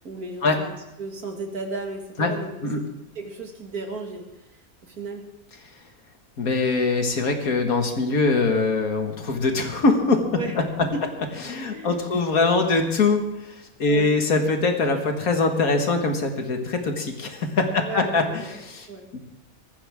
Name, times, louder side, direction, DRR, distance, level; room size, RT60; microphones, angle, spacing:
voice 1, 0.0-2.5 3.2-5.2 10.3-10.5 10.8-11.1 11.6-12.2 13.9-14.1 17.8-18.5 18.9-19.1, right 3 dB, 90° right, 2 dB, 2.6 m, -34 dB
voice 2, 6.4-10.3 10.5-10.6 11.4-18.9 19.1-19.2, left 3 dB, 75° left, 4 dB, 2.2 m, -23 dB
19.0 x 14.5 x 3.6 m, 0.88 s
omnidirectional pair, 1.5 m